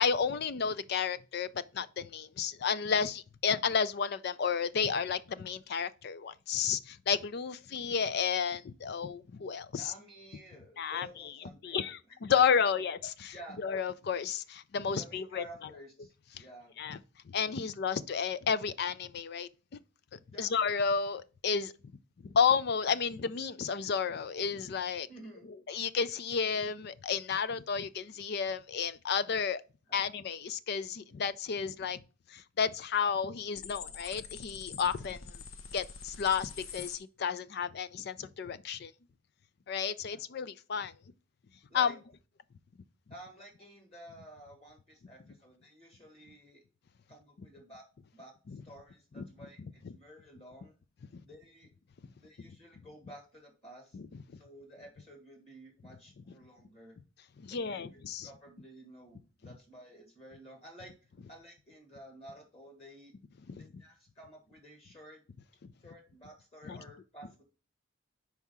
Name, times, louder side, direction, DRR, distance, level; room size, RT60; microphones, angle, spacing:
voice 1, 0.0-1.5 1.7-9.9 10.8-11.4 11.6-13.3 13.6-15.4 16.8-17.0 17.3-19.5 20.1-21.7 22.2-25.1 25.7-29.6 29.9-32.0 32.3-35.4 35.7-38.9 39.7-40.9 41.7-41.9 49.2-49.3 49.8-49.9 51.1-51.2 53.9-54.0 57.4-58.3 63.5-63.7 65.6-65.7 66.7-66.8, left 6 dB, 55° left, 0.4 m, -32 dB
voice 2, 9.7-12.7 13.3-13.6 14.9-16.7 20.3-20.5 25.1-25.5 29.9-30.0 40.1-40.2 41.7-41.9 43.1-46.6 47.1-47.8 48.1-50.7 51.2-51.7 52.2-54.0 54.4-57.0 57.5-60.9 61.3-63.1 63.6-65.2 65.8-67.4, right 1 dB, 30° left, 1.8 m, -52 dB
sound 1, 33.5-37.0, left 6 dB, 85° left, 0.8 m, -46 dB
4.8 x 4.6 x 5.5 m
head